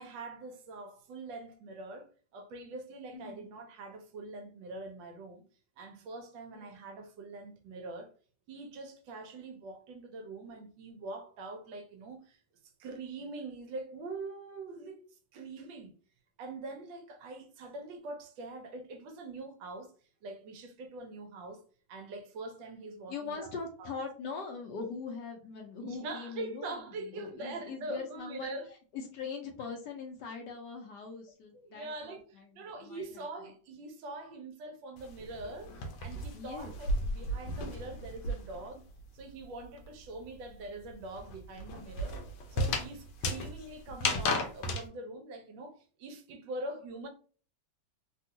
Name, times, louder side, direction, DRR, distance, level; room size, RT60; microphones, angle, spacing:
voice 1, 0.0-5.4 5.8-8.1 8.5-12.4 12.8-15.9 16.4-19.9 20.2-21.6 21.9-23.5 23.8-23.9 25.8-28.7 31.5-38.8 39.1-42.2 42.5-47.1, right 2 dB, 75° right, 1.3 m, -43 dB
voice 2, 3.1-3.4 6.5-6.7 23.1-26.8 27.1-28.6 28.9-33.2 36.3-36.7, left 5 dB, 70° left, 1.2 m, -41 dB
sound 1, 35.0-38.7 39.0-44.9, left 1 dB, 85° left, 1.5 m, -34 dB
3.5 x 2.3 x 2.7 m
omnidirectional pair, 2.1 m